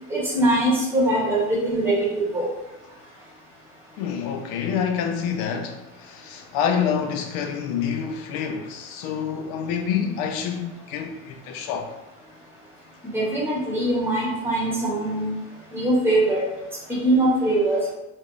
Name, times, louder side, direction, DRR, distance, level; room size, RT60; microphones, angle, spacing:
voice 1, 0.1-2.0 2.3-2.5 13.1-15.3 15.7-16.4 16.9-17.8, right 1 dB, 5° right, 0.9 m, -22 dB
voice 2, 4.0-11.9, left 7 dB, 65° left, 0.5 m, -27 dB
3.3 x 2.1 x 2.4 m
cardioid pair, 145°, 32 cm